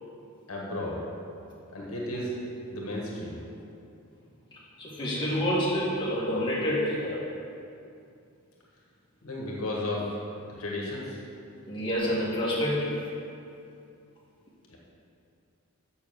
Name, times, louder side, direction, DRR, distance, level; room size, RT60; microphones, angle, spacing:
voice 1, 0.5-1.0 1.7-2.3 2.7-3.4 9.2-10.0 10.6-11.2 14.7-14.8, left 1 dB, 70° left, -3 dB, 1.6 m, -33 dB
voice 2, 4.5-7.2 11.7-12.9, equal, 20° left, -7 dB, 2.0 m, -28 dB
7.2 x 6.4 x 6.4 m, 2.6 s
head